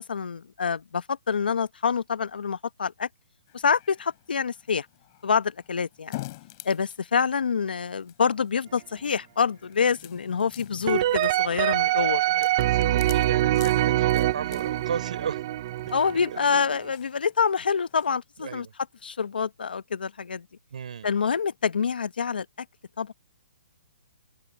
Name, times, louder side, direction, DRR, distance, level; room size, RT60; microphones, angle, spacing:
voice 1, 0.0-3.1 3.6-4.9 5.2-6.2 6.6-12.4 15.9-18.7 19.0-20.4 21.0-22.5 23.0-23.1, left 6 dB, 85° left, 0.9 m, -26 dB
sound 1, 3.5-18.1, left 20 dB, 25° left, 6.6 m, -47 dB
sound 2, 10.9-16.8, right 15 dB, 25° right, 0.5 m, -24 dB
voice 2, 12.3-15.4 16.3-16.4 18.4-18.7 20.7-21.1, right 7 dB, 55° right, 5.5 m, -35 dB
hypercardioid pair, 175°, 5 cm